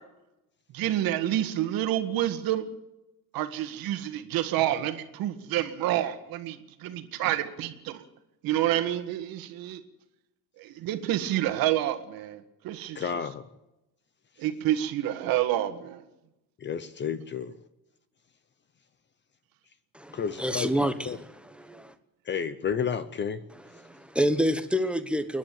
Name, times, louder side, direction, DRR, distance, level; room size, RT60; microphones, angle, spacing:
voice 1, 0.7-2.7 3.3-8.0 8.4-9.8 10.6-13.0 14.4-16.0, right 13 dB, 75° right, 1.9 m, -28 dB
voice 2, 12.9-13.5 16.6-17.6 20.1-20.7 21.1-21.2 22.3-23.4, left 7 dB, 30° left, 0.8 m, -31 dB
voice 3, 19.9-21.9 23.8-25.4, equal, 5° right, 1.1 m, -28 dB
29.0 x 10.5 x 9.1 m
cardioid pair, 170°, 35 cm